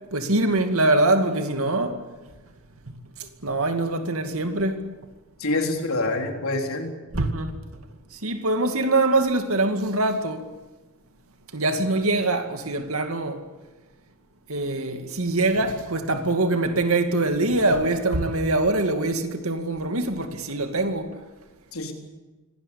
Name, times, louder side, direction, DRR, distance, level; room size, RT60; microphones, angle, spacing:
voice 1, 0.1-2.0 3.2-4.8 7.1-7.5 8.1-10.4 11.5-13.4 14.5-21.1, right 2 dB, 85° right, 2.3 m, -23 dB
voice 2, 5.4-6.9 21.7-21.9, left 2 dB, 85° left, 3.9 m, -26 dB
25.5 x 18.0 x 8.6 m
head